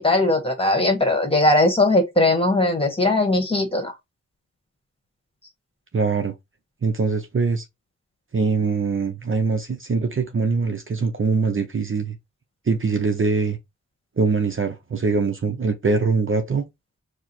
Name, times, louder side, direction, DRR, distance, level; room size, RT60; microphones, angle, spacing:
voice 1, 0.0-3.9, left 2 dB, 20° left, 1.5 m, -19 dB
voice 2, 5.9-6.3 6.8-7.6 8.3-12.2 12.7-13.6 14.2-16.7, right 4 dB, 40° right, 0.7 m, -23 dB
4.7 x 2.1 x 4.1 m
wide cardioid pair, 105°, 31 cm